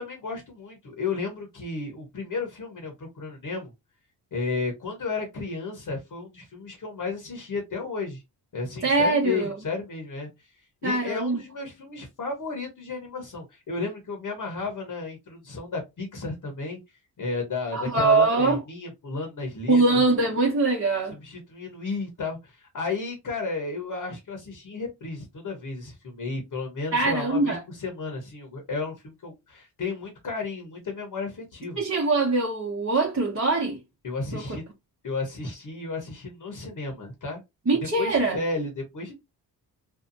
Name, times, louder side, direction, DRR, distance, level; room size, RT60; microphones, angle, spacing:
voice 1, 0.0-3.7 4.3-8.2 8.5-10.5 10.8-16.8 17.2-20.0 21.1-31.8 34.0-34.6 35.0-37.4 38.0-39.1, left 3 dB, 50° left, 1.0 m, -33 dB
voice 2, 8.8-9.5 10.8-11.4 17.7-18.6 19.7-21.2 26.9-27.6 31.8-33.8 34.3-34.4 37.7-38.4, right 3 dB, 35° right, 0.9 m, -22 dB
2.6 x 2.2 x 2.6 m
cardioid pair, 60°, 41 cm